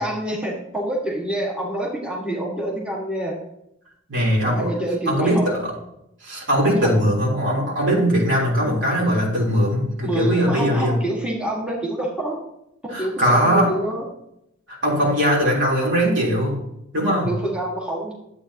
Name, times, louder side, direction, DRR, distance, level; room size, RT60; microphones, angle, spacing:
voice 1, 0.0-3.4 4.5-5.5 6.6-7.0 8.6-8.8 10.0-12.4 12.8-14.1 17.1-18.1, right 1 dB, 5° right, -4 dB, 1.7 m, -27 dB
voice 2, 4.1-4.7 5.1-5.7 6.2-10.9 12.9-13.7 14.8-16.6 16.9-17.3, equal, 65° right, -3 dB, 3.6 m, -20 dB
12.0 x 8.2 x 2.9 m, 0.80 s
head